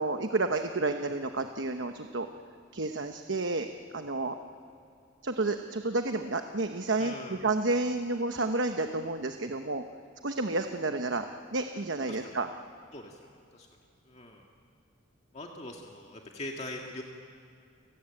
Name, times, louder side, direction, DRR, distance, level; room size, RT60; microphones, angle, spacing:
voice 1, 0.0-2.3 2.7-3.7 3.9-4.3 5.2-9.8 10.2-11.3 11.5-12.5, right 2 dB, 65° right, 6 dB, 1.0 m, -30 dB
voice 2, 7.0-7.4 12.1-12.4 12.9-13.2 13.5-13.7 14.1-14.4 15.3-17.0, left 1 dB, 35° left, 1 dB, 1.9 m, -42 dB
30.0 x 18.0 x 9.0 m, 2.5 s
head